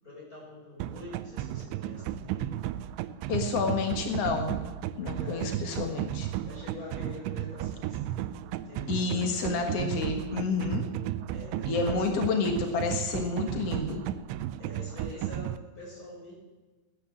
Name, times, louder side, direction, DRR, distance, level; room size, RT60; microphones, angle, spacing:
voice 1, 0.0-2.5 5.1-5.7 6.4-9.5 11.3-12.1 14.6-16.3, left 2 dB, 20° left, -4 dB, 6.5 m, -45 dB
sound 1, 0.8-15.6, right 13 dB, 80° right, 2.8 m, -34 dB
voice 2, 3.3-4.6 5.0-6.3 8.9-10.9 11.7-14.0, left 4 dB, 85° left, 4 dB, 1.3 m, -29 dB
18.0 x 10.0 x 7.5 m, 1.3 s
omnidirectional pair, 5.4 m